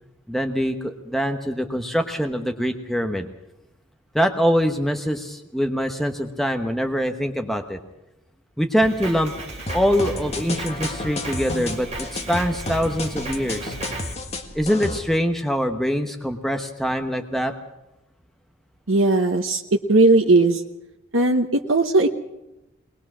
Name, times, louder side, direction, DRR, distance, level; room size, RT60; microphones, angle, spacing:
voice 1, 0.3-3.3 4.1-7.8 8.6-9.3 9.7-13.8 14.5-17.5, equal, ahead, 5 dB, 1.0 m, -24 dB
Drum kit, 8.8-14.1, right 2 dB, 30° right, 3.3 m, -36 dB
sound 1, 9.7-15.0, left 1 dB, 30° left, 1.6 m, -31 dB
voice 2, 18.9-19.6 19.9-20.6 21.1-22.1, right 2 dB, 75° right, 3 dB, 1.0 m, -17 dB
21.0 x 20.5 x 6.2 m, 0.94 s
head